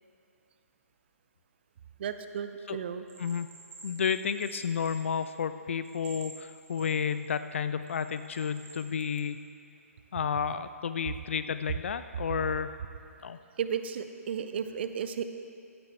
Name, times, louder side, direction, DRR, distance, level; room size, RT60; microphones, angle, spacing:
voice 1, 2.0-3.0 13.6-15.2, right 8 dB, 45° right, 9 dB, 0.7 m, -34 dB
Bell, 3.1-5.5 5.8-7.3 7.9-9.2, right 4 dB, 20° right, 2.6 m, -50 dB
voice 2, 3.8-9.4 10.1-12.7 13.2-13.4, left 7 dB, 55° left, 12 dB, 0.5 m, -31 dB
15.0 x 12.0 x 3.5 m, 2.4 s
figure-of-eight pair, 130°, 8 cm